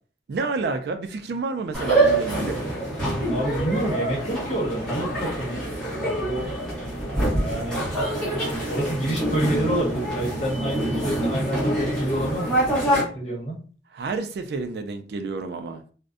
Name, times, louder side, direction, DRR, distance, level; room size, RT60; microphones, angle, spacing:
voice 1, 0.3-2.6 13.9-15.8, right 4 dB, 65° right, 0.3 m, -29 dB
sound 1, 1.7-13.0, right 1 dB, 5° left, 0.8 m, -25 dB
voice 2, 3.3-6.5 7.4-7.9 8.7-12.7 13.1-13.6, right 1 dB, 40° left, 1.0 m, -28 dB
2.5 x 2.1 x 2.4 m
head